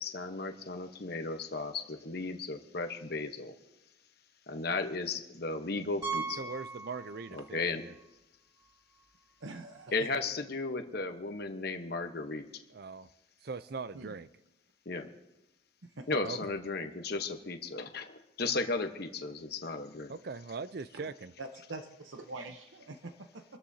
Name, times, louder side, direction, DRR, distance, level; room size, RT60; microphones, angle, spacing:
voice 1, 0.0-3.5 4.5-6.5 7.3-7.8 9.9-12.4 14.9-15.1 16.1-20.1, left 3 dB, 50° left, 6 dB, 1.1 m, -35 dB
Piano, 6.0-7.6 7.9-8.0 8.6-8.7 9.0-9.1 11.1-11.2, right 5 dB, 20° right, 3.1 m, -39 dB
voice 2, 6.4-7.9 12.7-13.1 13.4-14.3 16.2-16.6 20.1-21.3, right 4 dB, 50° right, 14 dB, 0.5 m, -41 dB
voice 3, 9.4-10.1 13.9-14.1 15.8-16.1 20.9-21.0 21.4-23.4, right 2 dB, 75° right, 6 dB, 0.9 m, -44 dB
26.5 x 13.5 x 2.8 m, 0.94 s
head